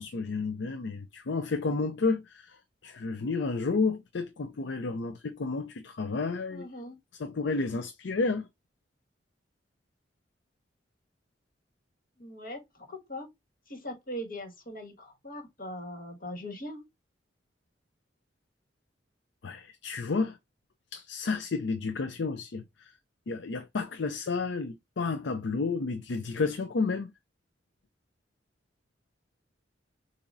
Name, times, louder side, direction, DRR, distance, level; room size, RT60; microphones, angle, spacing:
voice 1, 0.0-2.6 2.8-6.7 7.2-8.5 19.4-20.4 20.9-22.9 23.3-27.1, left 4 dB, 75° left, 0.5 m, -31 dB
voice 2, 6.5-7.0 12.2-13.3 13.7-16.8, equal, 55° left, 1.8 m, -40 dB
7.0 x 2.7 x 2.6 m
head